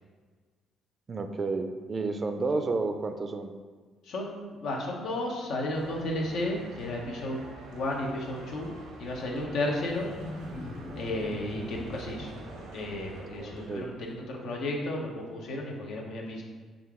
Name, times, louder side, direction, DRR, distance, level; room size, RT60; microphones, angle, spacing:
voice 1, 1.1-3.5 13.4-13.9, right 3 dB, 40° right, 6 dB, 0.4 m, -31 dB
voice 2, 4.0-7.4 7.7-8.7 9.0-10.1 10.9-12.3 12.7-16.4, left 1 dB, 75° left, 0 dB, 0.8 m, -33 dB
sound 1, 5.7-13.8, right 2 dB, 90° right, 0.8 m, -46 dB
Wild animals, 9.1-14.1, left 1 dB, 50° left, 1.0 m, -44 dB
5.2 x 2.4 x 3.5 m, 1.5 s
cardioid pair, 80°, 0 cm